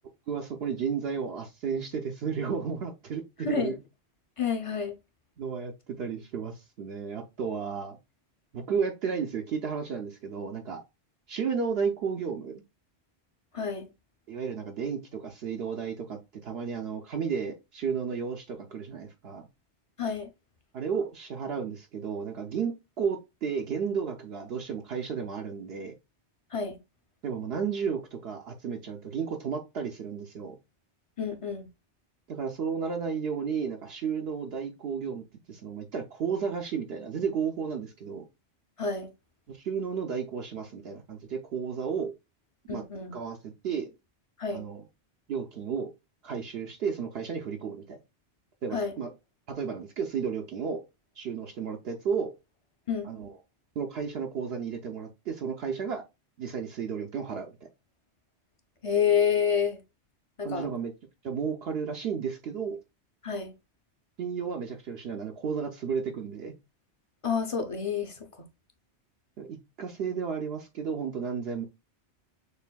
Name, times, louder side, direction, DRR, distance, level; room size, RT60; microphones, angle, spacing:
voice 1, 0.3-3.8 5.4-8.0 8.5-10.8 11.3-12.6 14.3-19.5 20.7-25.9 27.2-30.6 32.3-38.2 39.5-42.1 42.7-42.8 43.1-43.9 44.5-44.8 45.3-45.9 46.2-48.0 48.6-49.1 49.5-50.8 51.2-52.3 53.0-53.3 53.8-56.0 56.4-57.5 60.4-60.9 61.2-62.8 64.2-66.5 69.4-71.6, right 6 dB, 70° right, 0.8 m, -33 dB
voice 2, 3.4-3.7 4.4-4.9 13.5-13.9 20.0-20.3 26.5-26.8 31.2-31.7 38.8-39.1 42.7-43.1 44.4-44.6 48.7-49.0 52.9-53.1 58.8-59.8 60.4-60.7 63.2-63.5 67.2-68.1, left 6 dB, 35° left, 0.6 m, -28 dB
6.6 x 2.6 x 2.2 m
omnidirectional pair, 1.1 m